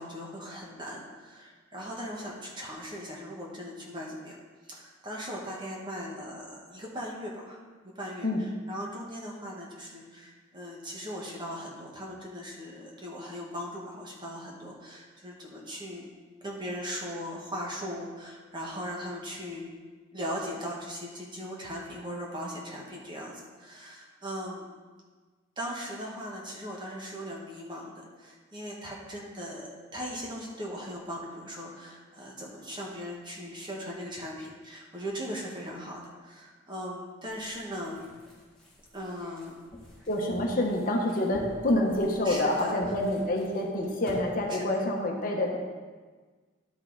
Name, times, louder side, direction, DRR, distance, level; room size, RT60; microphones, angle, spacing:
voice 1, 0.0-4.4 4.7-7.6 7.8-16.1 16.4-19.7 20.1-24.7 25.6-38.0 38.9-39.5 42.2-42.8 44.5-44.7, equal, 25° right, -3 dB, 1.4 m, -39 dB
sound 1, 37.3-44.2, left 1 dB, 5° left, 1.9 m, -47 dB
voice 2, 40.1-45.6, left 1 dB, 45° left, 0 dB, 1.1 m, -27 dB
11.5 x 5.4 x 4.0 m, 1.4 s
head